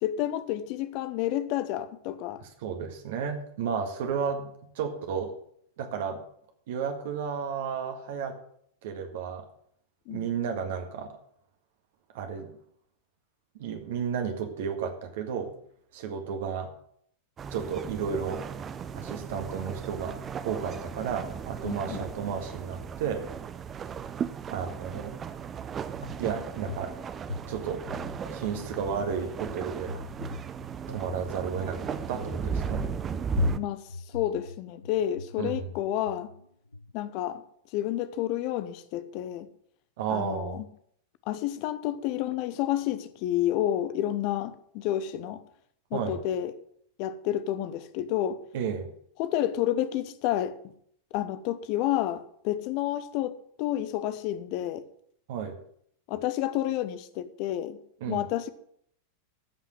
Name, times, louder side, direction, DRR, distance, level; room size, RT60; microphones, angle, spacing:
voice 1, 0.0-2.4 10.1-10.3 21.6-22.1 33.6-33.8 34.1-36.3 36.9-37.4 37.7-39.5 40.1-40.7 41.3-45.4 45.9-46.5 47.0-48.4 49.2-50.6 51.1-54.8 56.1-57.8 58.1-58.5, left 12 dB, 45° left, 0.9 m, -30 dB
voice 2, 2.4-5.3 5.8-6.2 6.7-8.4 8.8-9.5 10.1-11.1 12.1-12.5 13.6-15.5 15.9-16.7 17.5-18.4 18.9-23.3 24.5-25.2 26.2-26.9 27.5-27.8 28.3-29.9 30.9-32.9 35.4-35.7 40.0-40.6 45.9-46.2 48.5-48.9 55.3-55.6 58.0-58.2, right 7 dB, 55° right, 1.7 m, -33 dB
sound 1, 17.4-33.6, right 7 dB, 25° right, 0.7 m, -36 dB
sound 2, 25.9-36.9, left 3 dB, 80° left, 0.5 m, -38 dB
14.5 x 5.8 x 7.7 m
figure-of-eight pair, 90°, 0 cm